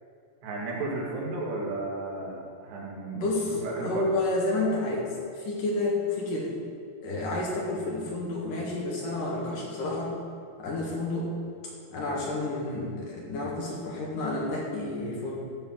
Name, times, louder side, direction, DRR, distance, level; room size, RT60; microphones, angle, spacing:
voice 1, 0.4-3.3 3.6-4.0, right 2 dB, 80° right, -3 dB, 4.1 m, -33 dB
voice 2, 3.1-6.6 7.0-10.2 10.6-11.3 11.9-15.4, left 2 dB, 60° left, -3 dB, 2.9 m, -30 dB
13.5 x 5.6 x 7.2 m, 2.3 s
omnidirectional pair, 4.8 m